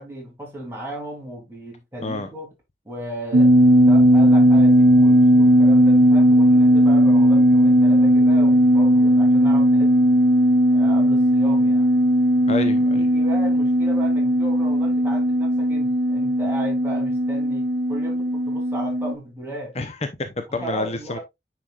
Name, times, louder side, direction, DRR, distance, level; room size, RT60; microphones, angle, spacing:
voice 1, 0.0-2.5 2.8-9.9 10.7-11.9 12.9-19.7 20.6-21.2, right 1 dB, 15° right, 3.2 m, -35 dB
sound 1, 3.3-19.1, equal, 55° right, 0.7 m, -16 dB
voice 2, 12.5-13.1 19.8-21.2, left 2 dB, 35° left, 0.7 m, -28 dB
9.1 x 4.8 x 2.4 m
head